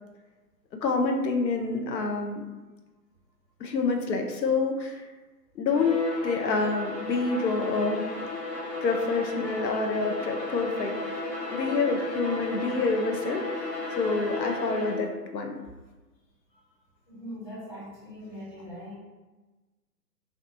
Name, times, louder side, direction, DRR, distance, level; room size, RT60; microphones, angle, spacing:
voice 1, 0.8-2.4 3.6-5.0 5.6-6.0 6.2-8.1 8.8-11.2 11.5-15.5, left 3 dB, 85° left, 3 dB, 0.6 m, -27 dB
Bowed string instrument, 5.7-15.2, left 2 dB, 30° left, 0.5 m, -34 dB
voice 2, 17.1-19.0, equal, 10° left, -13 dB, 1.3 m, -41 dB
2.4 x 2.3 x 2.6 m, 1.2 s
figure-of-eight pair, 130°, 49 cm